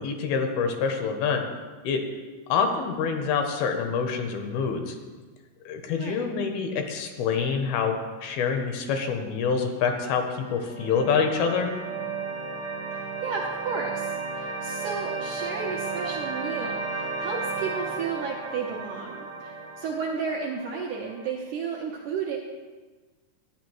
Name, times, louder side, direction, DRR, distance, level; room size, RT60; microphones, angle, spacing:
voice 1, 0.0-1.4 1.8-2.0 2.5-5.0 5.7-11.7, left 6 dB, 80° left, 5 dB, 2.6 m, -26 dB
sound 1, 10.2-21.3, right 4 dB, 35° right, 0.4 m, -34 dB
voice 2, 12.9-22.4, right 5 dB, 80° right, -3 dB, 1.8 m, -33 dB
13.0 x 9.3 x 3.1 m, 1.3 s
omnidirectional pair, 4.6 m